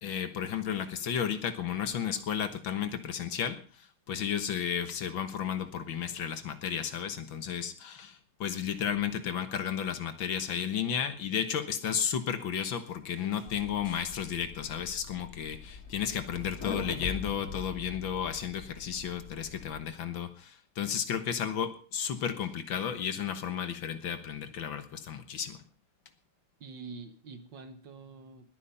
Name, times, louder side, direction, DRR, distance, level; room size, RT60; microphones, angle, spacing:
voice 1, 0.0-25.6, left 8 dB, 65° left, 10 dB, 2.0 m, -33 dB
sound 1, 13.5-19.8, left 5 dB, 40° left, 2.4 m, -43 dB
voice 2, 26.6-28.5, right 4 dB, 60° right, 10 dB, 1.9 m, -46 dB
20.0 x 9.5 x 5.7 m, 0.41 s
omnidirectional pair, 2.4 m